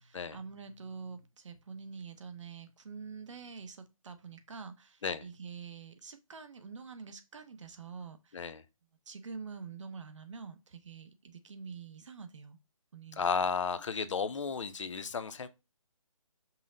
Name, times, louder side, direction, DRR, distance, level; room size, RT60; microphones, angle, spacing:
voice 1, 0.0-8.4 9.1-12.6 12.9-13.4, right 5 dB, 60° right, 0.8 m, -46 dB
voice 2, 13.2-15.5, left 5 dB, 60° left, 0.5 m, -33 dB
5.5 x 2.1 x 3.7 m
hypercardioid pair, 160°, 18 cm